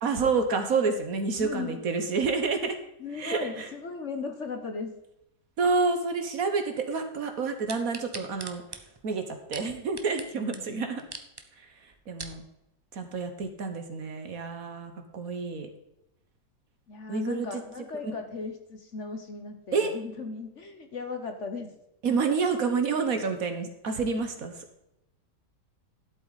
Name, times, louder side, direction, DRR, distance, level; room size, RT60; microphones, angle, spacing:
voice 1, 0.0-2.8 3.1-3.7 5.6-8.6 9.0-11.0 11.6-12.4 12.9-15.7 17.1-17.5 18.0-18.1 19.7-19.9 22.0-24.6, right 4 dB, 55° right, 6 dB, 1.5 m, -29 dB
voice 2, 1.4-1.8 3.0-4.9 10.4-10.9 16.9-21.7, left 4 dB, 50° left, 6 dB, 1.3 m, -37 dB
sound 1, 7.7-10.3 10.5-10.6 11.0-11.4 11.9-12.4 13.0-13.1, right 3 dB, 25° right, 0.6 m, -41 dB
12.0 x 8.0 x 4.1 m, 0.87 s
omnidirectional pair, 1.9 m